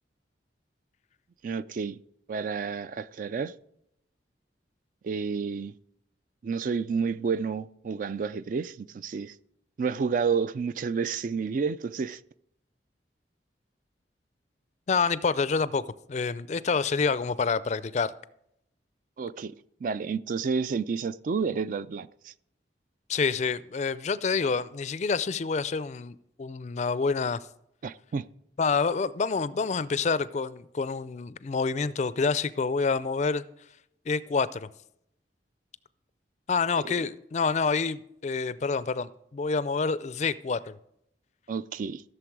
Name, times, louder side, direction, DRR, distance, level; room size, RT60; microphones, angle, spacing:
voice 1, 1.4-2.0 2.3-3.5 5.0-5.7 6.4-9.3 9.8-12.2 19.2-19.5 19.8-22.3 27.8-28.3 36.8-37.0 41.5-42.0, right 5 dB, 45° right, 0.3 m, -30 dB
voice 2, 14.9-18.1 23.1-27.4 28.6-33.4 34.1-34.7 36.5-40.8, left 4 dB, 40° left, 0.4 m, -27 dB
14.5 x 6.8 x 4.7 m
head